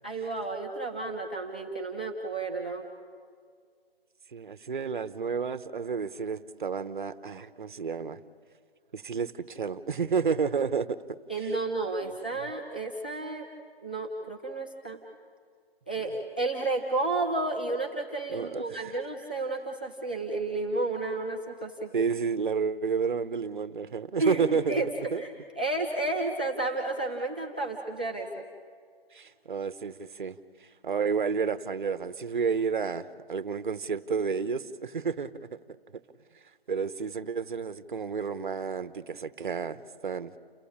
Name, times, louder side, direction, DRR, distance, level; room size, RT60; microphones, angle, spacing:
voice 1, 0.0-2.9 11.3-13.5 13.8-15.0 15.9-21.9 24.2-28.4, right 2 dB, 10° right, -1 dB, 0.6 m, -32 dB
voice 2, 4.3-8.2 8.9-11.5 12.0-12.4 18.3-18.9 21.9-24.8 25.1-25.2 29.1-30.4 30.8-35.6 35.9-36.0 36.7-40.3, right 5 dB, 50° right, 13 dB, 1.1 m, -31 dB
29.5 x 14.5 x 8.7 m, 2.1 s
hypercardioid pair, 170°, 31 cm